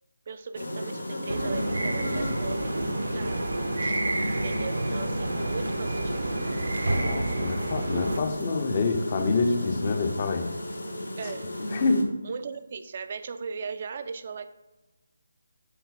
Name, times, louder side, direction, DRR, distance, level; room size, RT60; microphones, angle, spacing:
voice 1, 0.3-3.4 3.8-4.0 4.4-6.3 11.2-11.5 12.2-14.5, right 5 dB, 40° right, 11 dB, 0.4 m, -38 dB
sound 1, 0.5-12.0, left 1 dB, 85° left, 1.1 m, -33 dB
sound 2, 1.3-8.2, right 2 dB, 70° right, 0.8 m, -30 dB
voice 2, 6.9-10.5 11.2-11.3 11.7-12.1, left 3 dB, 35° left, 7 dB, 0.7 m, -27 dB
6.9 x 3.9 x 4.1 m, 1.1 s
figure-of-eight pair, 155°, 0 cm